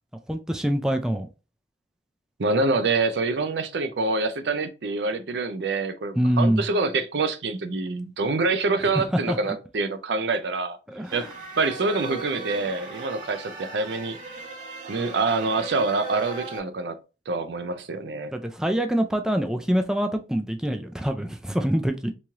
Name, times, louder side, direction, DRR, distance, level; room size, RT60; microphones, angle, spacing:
voice 1, 0.3-1.3 6.2-6.6 8.9-9.4 10.9-11.3 18.3-22.1, equal, 5° right, 0.3 m, -25 dB
voice 2, 2.4-10.8 11.1-11.3 11.6-14.2 14.9-17.0 17.3-18.3, right 3 dB, 70° right, 0.5 m, -26 dB
sound 1, 11.0-16.6, right 4 dB, 45° right, 1.1 m, -38 dB
3.1 x 2.9 x 3.5 m
head